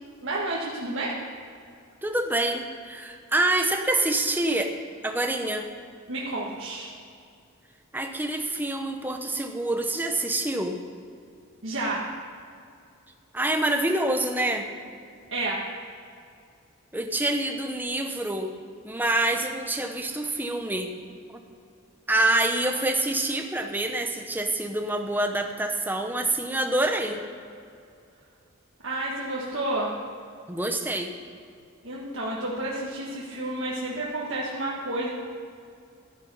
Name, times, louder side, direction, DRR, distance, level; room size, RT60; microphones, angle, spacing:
voice 1, 0.2-1.2 6.1-6.9 11.6-12.0 15.3-15.6 28.8-30.0 31.8-35.1, right 2 dB, 75° right, -5 dB, 1.6 m, -30 dB
voice 2, 2.0-4.8 5.0-5.7 7.9-10.8 13.3-14.7 16.9-18.6 18.8-20.9 21.3-21.4 22.1-27.2 30.5-31.1, right 1 dB, 10° right, 5 dB, 0.8 m, -26 dB
13.0 x 10.5 x 5.5 m, 2.4 s
head